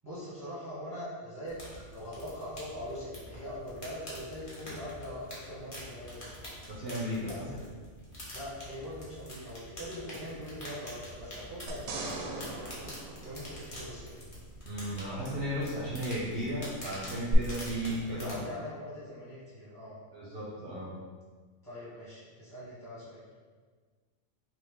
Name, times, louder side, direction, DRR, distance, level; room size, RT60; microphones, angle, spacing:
voice 1, 0.0-1.5 1.9-6.2 7.2-7.7 8.3-12.9 13.2-14.1 18.1-20.0 21.6-23.2, equal, 15° right, -11 dB, 0.9 m, -42 dB
sound 1, 1.5-18.4, equal, 30° left, 0.9 m, -46 dB
voice 2, 6.7-7.5 14.6-18.5 20.1-20.9, equal, 55° right, -6 dB, 0.8 m, -35 dB
sound 2, 11.7-14.2 17.3-17.4, right 3 dB, 80° right, 1.0 m, -40 dB
3.3 x 2.7 x 3.5 m, 1.5 s
omnidirectional pair, 1.4 m